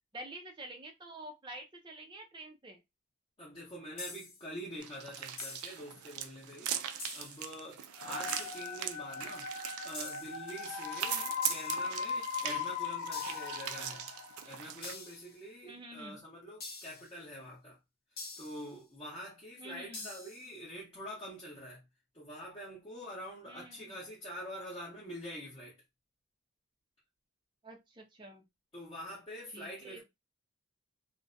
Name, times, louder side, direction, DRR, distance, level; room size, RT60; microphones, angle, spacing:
voice 1, 0.1-2.8 11.1-11.3 15.7-16.2 19.6-20.1 23.5-23.9 27.6-28.4 29.5-30.0, right 1 dB, 20° right, 0.4 m, -48 dB
voice 2, 3.4-11.2 11.5-14.1 14.5-17.8 18.1-21.8 22.1-25.8 28.7-30.0, equal, 20° left, 0.7 m, -46 dB
sound 1, 4.0-4.5 5.4-5.9 7.0-7.5 8.3-8.8 9.9-10.5 11.4-12.0 13.1-13.6 14.8-15.4 16.6-17.1 18.2-18.7 19.9-20.5, left 3 dB, 45° left, 1.0 m, -45 dB
sound 2, 4.8-14.9, right 9 dB, 85° right, 0.4 m, -40 dB
sound 3, 8.0-14.8, left 6 dB, 80° left, 0.4 m, -39 dB
2.5 x 2.1 x 2.5 m
head